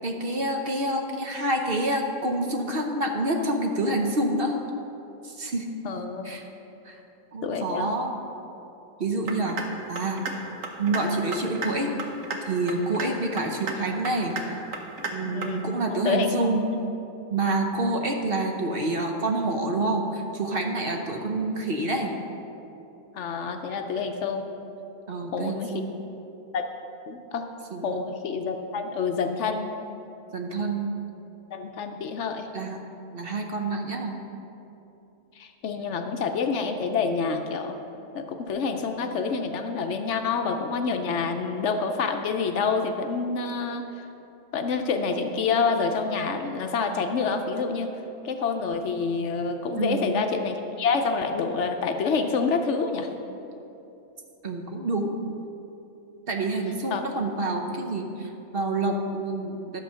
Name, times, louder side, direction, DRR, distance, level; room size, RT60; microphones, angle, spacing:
voice 1, 0.0-4.6 5.2-5.7 6.2-6.4 6.8-7.0 7.3-8.1 9.0-9.6 9.9-10.2 10.8-11.9 12.5-14.4 15.1-16.7 17.3-22.1 25.1-25.9 27.7-27.9 30.3-30.9 32.5-32.8 33.1-34.2 49.8-50.2 54.4-55.2 56.3-59.8, right 2 dB, 50° right, 2 dB, 0.9 m, -27 dB
voice 2, 5.8-6.3 7.4-7.9 15.2-16.3 23.1-24.5 25.3-25.7 26.5-26.7 27.1-27.5 27.8-29.7 31.5-32.5 35.4-37.8 38.1-43.9 44.5-47.9 48.2-53.1 56.9-57.0, left 5 dB, 65° left, 6 dB, 0.9 m, -27 dB
sound 1, 9.3-9.7 10.0-10.3 10.6-11.0 11.3-11.7 12.0-12.4 12.7-13.1 13.4-13.7 14.0-14.4 14.7-15.1 15.4-15.5, right 4 dB, 70° right, 1.4 m, -31 dB
11.5 x 7.0 x 5.6 m, 2.9 s
omnidirectional pair, 1.4 m